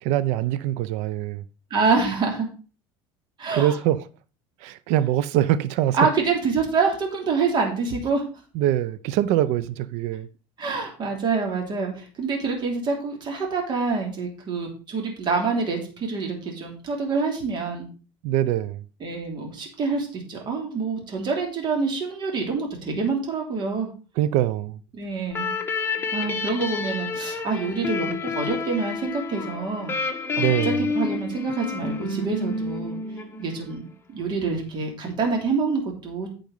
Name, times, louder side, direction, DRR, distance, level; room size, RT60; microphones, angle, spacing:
voice 1, 0.0-1.4 3.5-4.0 4.6-6.0 8.5-10.3 18.2-18.8 24.2-24.8 30.4-30.8, right 12 dB, 70° right, 0.6 m, -23 dB
voice 2, 1.7-2.5 3.4-3.8 5.9-8.2 10.6-17.9 19.0-23.9 24.9-25.5 26.1-29.9 30.4-33.0 33.4-36.3, right 4 dB, 40° right, 3.1 m, -26 dB
sound 1, 25.3-33.8, left 4 dB, 20° left, 1.4 m, -29 dB
9.3 x 5.3 x 5.4 m
supercardioid pair, 115°, 12 cm